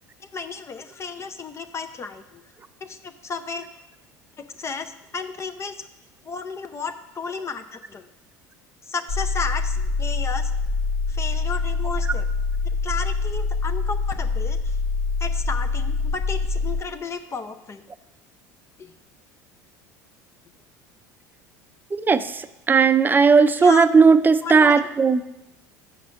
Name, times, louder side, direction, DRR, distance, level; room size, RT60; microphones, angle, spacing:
voice 1, 0.2-2.4 2.8-3.7 4.4-5.9 6.2-8.1 8.8-10.5 11.1-12.2 12.8-14.8 15.2-17.8 18.8-18.9 23.6-23.9 24.4-24.8, left 5 dB, 30° left, 7 dB, 0.6 m, -33 dB
sound 1, 9.1-16.8, left 4 dB, 75° left, 0.9 m, -25 dB
voice 2, 21.9-25.3, right 5 dB, 20° right, 12 dB, 0.5 m, -17 dB
6.8 x 5.8 x 6.2 m, 0.95 s
hypercardioid pair, 70°, 9 cm